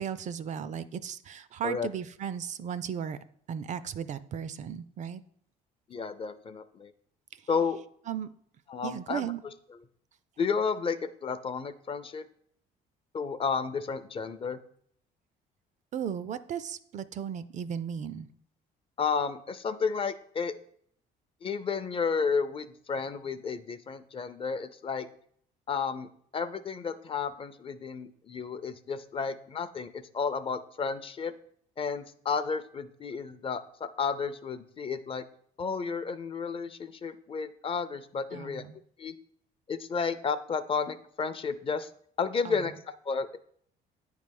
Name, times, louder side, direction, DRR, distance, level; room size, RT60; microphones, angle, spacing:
voice 1, 0.0-3.2 3.5-5.2 7.3-7.5 8.1-8.3 8.8-9.4 15.9-18.3 38.3-38.8 42.4-42.6, right 8 dB, 45° right, 14 dB, 0.4 m, -36 dB
voice 2, 5.9-6.9 7.5-7.8 8.7-9.3 10.4-12.2 13.1-14.6 19.0-20.5 21.4-25.1 25.7-31.3 31.8-35.2 35.6-38.6 39.0-39.2 39.7-41.9 42.2-43.4, left 5 dB, 35° left, 12 dB, 0.5 m, -32 dB
9.0 x 3.3 x 5.3 m, 0.65 s
cardioid pair, 110°, 17 cm